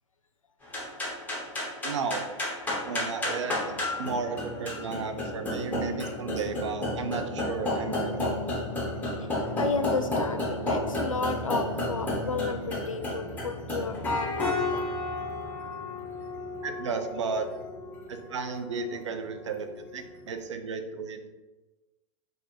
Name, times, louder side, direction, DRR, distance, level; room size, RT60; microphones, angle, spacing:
sound 1, 0.6-20.2, left 1 dB, 10° left, 1.0 m, -32 dB
voice 1, 1.8-2.2 2.9-8.3 16.6-17.5 18.1-21.3, right 5 dB, 65° right, 6 dB, 0.5 m, -34 dB
voice 2, 9.5-15.0, left 4 dB, 85° left, 8 dB, 0.4 m, -32 dB
4.0 x 2.6 x 4.1 m, 1.2 s
figure-of-eight pair, 100°, 17 cm